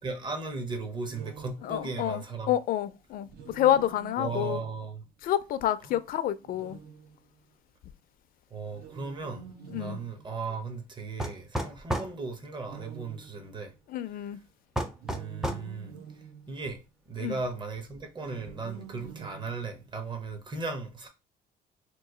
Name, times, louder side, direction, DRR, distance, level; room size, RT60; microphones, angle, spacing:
voice 1, 0.0-2.6 4.2-5.0 5.9-6.0 8.5-13.7 15.0-16.0 16.5-16.8 17.1-21.1, right 4 dB, 25° right, 0.8 m, -36 dB
sound 1, 1.0-2.1 3.2-5.2 6.4-7.5 8.7-10.8 12.6-14.0 14.9-16.9 18.1-20.1, right 7 dB, 65° right, 0.8 m, -48 dB
voice 2, 1.6-4.6 5.2-6.8 9.7-10.0 13.9-14.4 17.2-17.4, left 12 dB, 60° left, 0.4 m, -28 dB
sound 2, 11.2-12.1 14.7-15.7, right 1 dB, 5° right, 0.4 m, -31 dB
2.9 x 2.4 x 3.7 m
cardioid pair, 110°, 17 cm